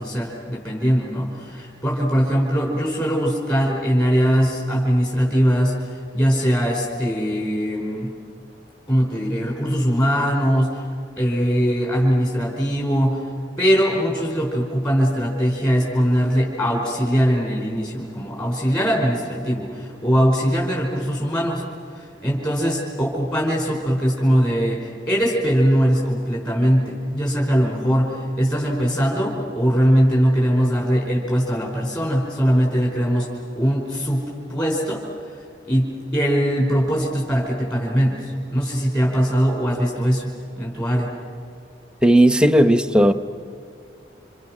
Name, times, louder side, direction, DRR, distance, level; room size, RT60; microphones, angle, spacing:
voice 1, 0.0-5.8 6.1-8.1 8.9-10.8 11.2-13.2 13.6-21.6 22.0-33.3 33.6-35.0 35.7-38.2 38.5-41.1, equal, 25° left, 4.6 m, -21 dB
voice 2, 42.0-43.1, right 1 dB, 5° right, 0.8 m, -14 dB
29.5 x 27.5 x 6.2 m
head